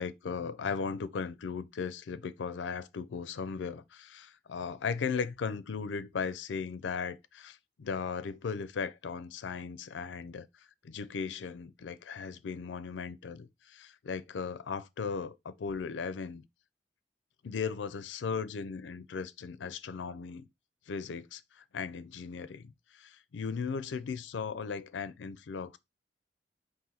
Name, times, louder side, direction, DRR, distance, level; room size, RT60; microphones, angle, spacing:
voice 1, 0.0-10.5 10.8-16.4 17.4-20.5 20.9-25.8, left 5 dB, 80° left, 0.4 m, -37 dB
4.2 x 2.5 x 3.9 m
head